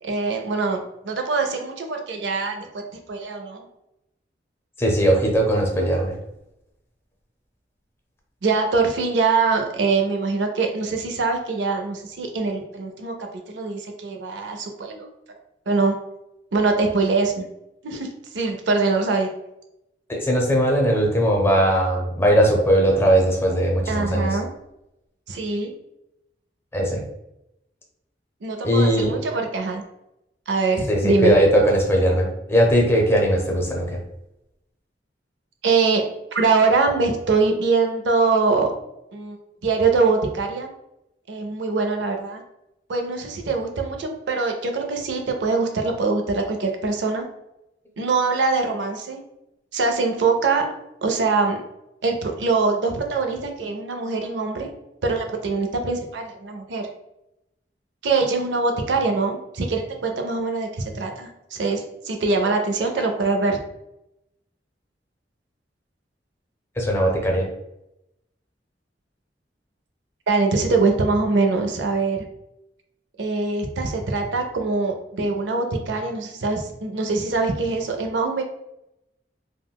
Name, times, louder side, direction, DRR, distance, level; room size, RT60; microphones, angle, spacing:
voice 1, 0.0-3.7 8.4-15.4 15.7-16.0 16.5-17.5 17.8-18.1 18.3-19.3 23.9-24.5 25.3-25.7 28.4-29.8 30.5-31.4 35.6-36.0 36.3-38.7 39.1-39.4 39.6-40.7 41.3-42.4 42.9-47.2 48.0-49.2 49.7-50.7 51.0-51.6 52.0-54.7 55.0-56.9 58.0-63.6 70.3-72.3 73.2-78.4, right 4 dB, 85° right, 4 dB, 0.5 m, -23 dB
voice 2, 4.8-6.1 20.1-24.3 26.7-27.0 28.6-29.1 30.9-34.0 66.8-67.5, right 1 dB, 15° left, 0 dB, 0.5 m, -19 dB
3.6 x 2.1 x 2.3 m, 0.87 s
head